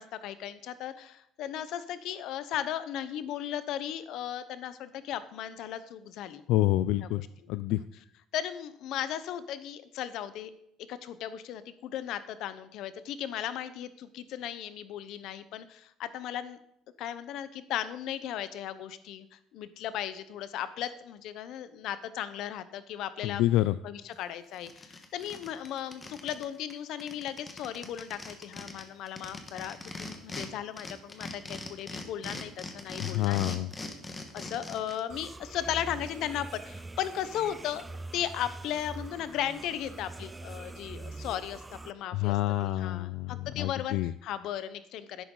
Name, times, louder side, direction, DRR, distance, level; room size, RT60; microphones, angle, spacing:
voice 1, 0.0-6.4 8.3-10.5 10.9-16.6 17.0-23.4 23.8-33.6 34.3-37.8 38.1-45.2, left 10 dB, 60° left, 13 dB, 0.8 m, -36 dB
voice 2, 6.5-7.2 7.5-7.8 23.2-23.8 33.0-33.7 42.1-44.1, left 15 dB, 80° left, 14 dB, 0.4 m, -27 dB
sound 1, 24.1-24.2 24.5-26.4 26.7-26.8 27.0-30.5 30.8-35.0, left 2 dB, 15° left, 1.3 m, -41 dB
sound 2, 35.1-41.9, right 2 dB, 10° right, 0.4 m, -44 dB
12.0 x 11.0 x 3.9 m, 0.74 s
cardioid pair, 175°, 0 cm